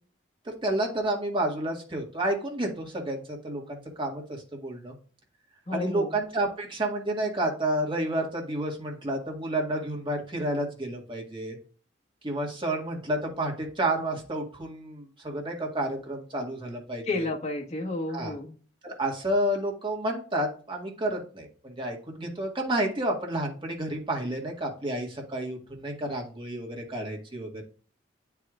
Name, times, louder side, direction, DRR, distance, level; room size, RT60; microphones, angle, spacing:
voice 1, 0.5-5.0 5.7-11.6 12.2-17.3 18.1-18.3 18.8-27.6, right 1 dB, 25° right, 0 dB, 1.8 m, -30 dB
voice 2, 5.7-6.1 17.1-18.5, left 2 dB, 40° left, -1 dB, 1.5 m, -31 dB
9.3 x 4.7 x 2.5 m, 0.40 s
head